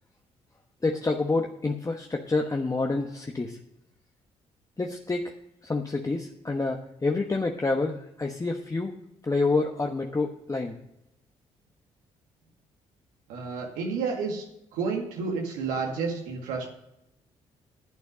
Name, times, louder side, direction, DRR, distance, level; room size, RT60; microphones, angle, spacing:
voice 1, 0.8-3.6 4.8-5.3 5.6-8.9 9.2-10.8, left 3 dB, 25° left, 2 dB, 1.1 m, -28 dB
voice 2, 13.3-14.4 14.7-16.7, right 5 dB, 85° right, 1 dB, 2.0 m, -30 dB
10.5 x 8.4 x 5.0 m, 0.85 s
supercardioid pair, 55°, 13 cm